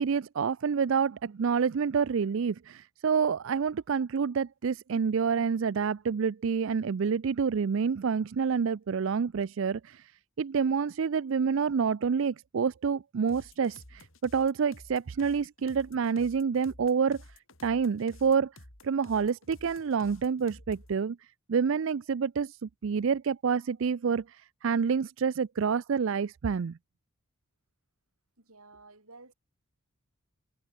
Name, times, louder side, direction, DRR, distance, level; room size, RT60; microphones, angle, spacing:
voice 1, 0.0-10.1 10.4-17.2 17.6-18.5 18.8-21.2 21.5-26.8, right 6 dB, 60° right, 0.4 m, -28 dB
sound 1, 13.3-21.0, left 1 dB, 60° left, 5.6 m, -52 dB
voice 2, 28.4-29.3, right 3 dB, 75° right, 6.6 m, -53 dB
head